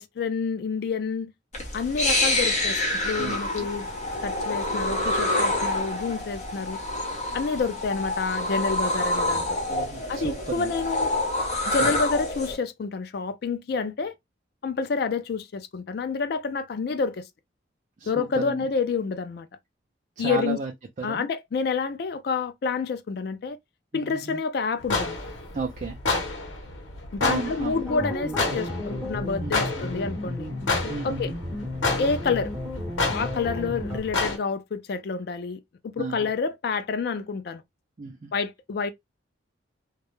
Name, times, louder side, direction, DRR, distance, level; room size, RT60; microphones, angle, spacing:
voice 1, 0.0-1.3 1.7-3.9 4.2-6.8 7.3-9.6 10.1-11.1 11.7-14.2 14.6-17.2 18.1-19.5 20.2-20.6 21.0-23.6 23.9-25.2 27.1-30.5 31.0-31.3 32.0-32.5 33.1-37.6 38.3-38.9, left 4 dB, 55° left, 0.3 m, -28 dB
sound 1, 1.5-12.6, left 1 dB, 35° left, 0.7 m, -27 dB
voice 2, 9.7-10.7 18.0-18.7 20.2-20.7 21.0-21.3 23.9-24.4 25.5-26.0 27.2-27.8 29.4-29.9 30.9-31.4 36.0-36.3 38.0-38.3, right 4 dB, 40° right, 0.4 m, -33 dB
sound 2, 24.8-34.4, left 3 dB, 85° left, 0.8 m, -30 dB
sound 3, 27.9-34.0, left 1 dB, 10° right, 0.9 m, -33 dB
2.2 x 2.0 x 2.8 m
head